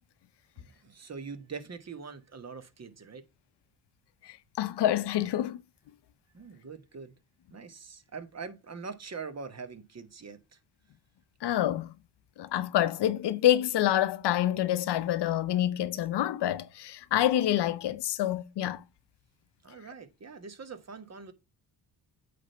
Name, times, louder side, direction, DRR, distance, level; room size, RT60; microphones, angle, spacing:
voice 1, 0.6-3.2 6.3-7.1 7.5-10.6 19.6-21.3, right 5 dB, 40° right, 1.3 m, -43 dB
voice 2, 4.2-5.6 11.4-11.9 12.4-18.8, left 12 dB, 75° left, 0.8 m, -27 dB
8.5 x 3.5 x 5.5 m
cardioid pair, 75°, 41 cm